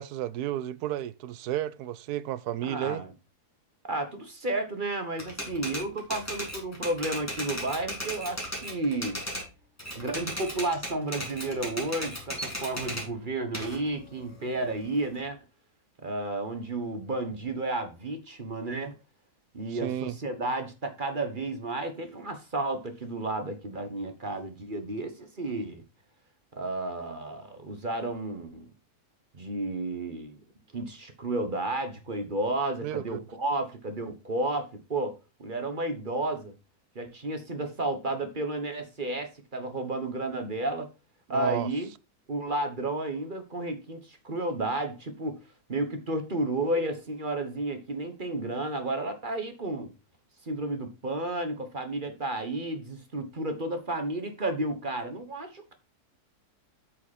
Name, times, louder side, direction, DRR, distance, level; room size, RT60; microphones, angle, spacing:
voice 1, 0.0-3.0 19.7-20.2 32.8-33.2 41.3-41.7, right 12 dB, 85° right, 1.2 m, -32 dB
voice 2, 2.6-3.1 3.8-9.2 9.9-15.4 16.0-18.9 19.5-25.8 26.5-28.7 29.3-30.4 30.7-35.1 35.4-36.5 36.9-40.9 41.3-41.9 42.3-45.4 45.7-49.9 50.4-55.7, right 2 dB, 35° right, 1.3 m, -32 dB
Typewriter, 5.2-9.5 9.8-13.1 13.5-15.2, equal, 10° left, 2.9 m, -36 dB
9.1 x 5.9 x 4.2 m
omnidirectional pair, 1.6 m